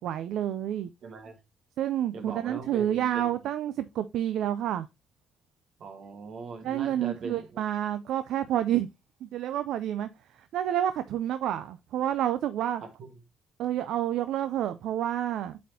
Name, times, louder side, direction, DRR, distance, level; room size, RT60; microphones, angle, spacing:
voice 1, 0.0-0.9 1.8-4.9 6.6-8.9 9.2-10.1 10.4-12.8 13.6-15.6, right 11 dB, 80° right, 0.4 m, -29 dB
voice 2, 1.0-1.4 2.1-3.4 5.8-7.6 12.8-13.2, right 4 dB, 65° right, 1.4 m, -40 dB
8.3 x 4.2 x 2.7 m
cardioid pair, 90°, 0 cm